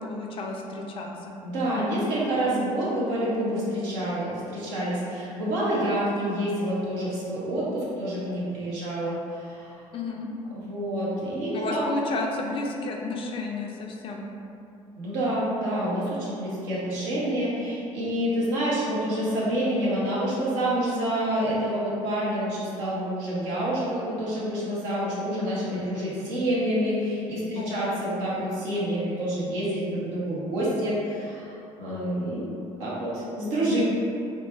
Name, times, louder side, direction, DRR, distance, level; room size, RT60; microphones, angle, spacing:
voice 1, 0.0-1.3 9.9-10.3 11.5-14.3 27.5-27.9, left 3 dB, 30° left, 0 dB, 0.4 m, -32 dB
voice 2, 1.4-9.8 10.5-11.8 15.0-32.5 32.8-33.8, right 1 dB, 65° right, -7 dB, 0.8 m, -28 dB
2.7 x 2.2 x 3.0 m, 2.7 s
figure-of-eight pair, 50°, 17 cm